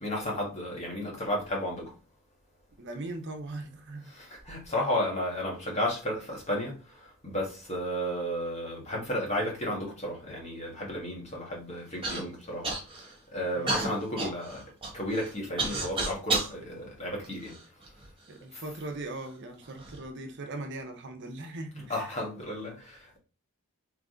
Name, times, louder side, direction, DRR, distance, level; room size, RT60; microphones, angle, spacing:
voice 1, 0.0-1.9 4.0-12.7 13.3-14.6 14.9-17.5 18.5-18.6 21.8-23.2, left 1 dB, 30° left, 1.6 m, -33 dB
voice 2, 2.8-4.1 13.5-13.8 18.3-22.1, right 2 dB, 55° right, 0.7 m, -39 dB
Human voice / Cough, 12.0-12.2 12.6-13.1 13.7-16.5 17.2-18.1 18.8-18.9 19.6-20.0, right 3 dB, 25° right, 1.3 m, -32 dB
3.7 x 3.2 x 3.8 m
head